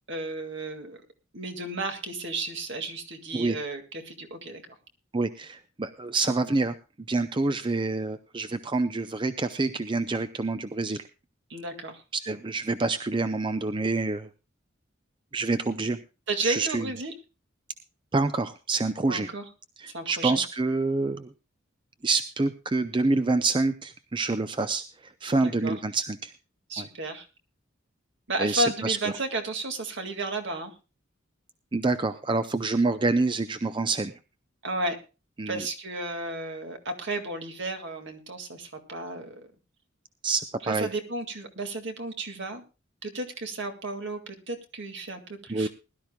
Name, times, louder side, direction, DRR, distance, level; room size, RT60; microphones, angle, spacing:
voice 1, 0.1-1.0 1.3-4.6 11.5-12.0 16.3-17.1 19.1-19.5 19.9-20.4 25.4-25.8 26.7-27.3 28.3-30.7 34.6-35.0 35.5-39.5 40.6-42.6 43.0-45.7, right 2 dB, 65° right, 5 dB, 2.1 m, -33 dB
voice 2, 5.1-6.7 7.1-11.0 12.1-14.3 15.3-16.0 16.4-16.9 18.1-19.3 19.8-21.3 22.0-26.3 26.8-26.9 28.4-29.1 31.7-34.1 35.4-35.6 40.2-40.9 45.5-45.7, right 3 dB, 25° right, 10 dB, 0.5 m, -27 dB
21.0 x 12.0 x 2.3 m, 0.31 s
head